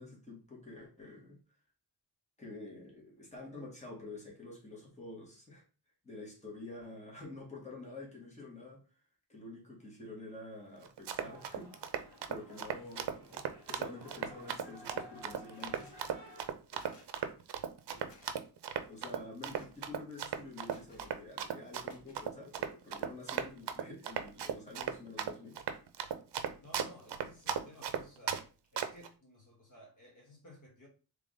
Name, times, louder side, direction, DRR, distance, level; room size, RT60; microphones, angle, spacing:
voice 1, 0.0-1.4 2.4-5.6 6.0-8.8 9.3-16.1 18.9-25.6, left 2 dB, 15° left, -3 dB, 1.6 m, -48 dB
Run, 10.8-28.4 28.8-29.1, right 8 dB, 70° right, 0.6 m, -37 dB
sound 1, 11.1-16.5, left 1 dB, 65° left, 2.0 m, -55 dB
sound 2, 15.6-16.0 16.8-17.2 18.1-18.4 19.5-19.9 20.7-21.2 21.9-22.3, left 3 dB, 90° left, 1.4 m, -59 dB
voice 2, 26.6-30.9, left 1 dB, 45° left, -1 dB, 1.2 m, -56 dB
3.6 x 3.3 x 3.7 m, 0.35 s
wide cardioid pair, 165°, 42 cm